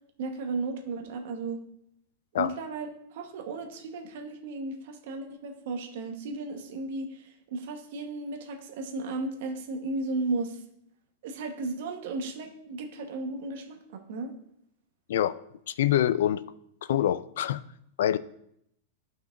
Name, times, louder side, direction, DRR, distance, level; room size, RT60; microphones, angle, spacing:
voice 1, 0.2-1.6 2.4-10.6 11.2-14.3, right 3 dB, 55° right, 4 dB, 1.2 m, -35 dB
voice 2, 15.7-16.4 16.9-17.6 18.0-18.2, left 11 dB, 70° left, 16 dB, 0.3 m, -25 dB
14.0 x 5.8 x 2.6 m, 0.74 s
supercardioid pair, 170°, 0 cm